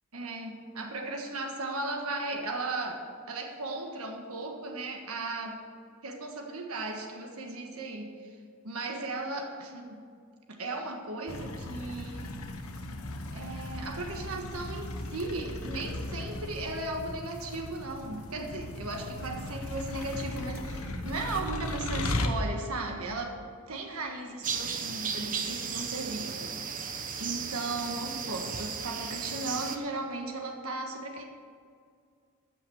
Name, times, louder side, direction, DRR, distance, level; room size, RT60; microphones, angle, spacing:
voice 1, 0.1-5.6 6.0-8.3 8.6-10.0 10.5-12.4 13.3-23.4 23.7-31.2, right 2 dB, 70° right, 2 dB, 1.5 m, -36 dB
sound 1, 11.3-22.3, left 1 dB, 70° left, 1.2 m, -37 dB
sound 2, 24.4-29.8, right 6 dB, 35° right, 0.9 m, -35 dB
14.5 x 5.9 x 7.8 m, 2.2 s
head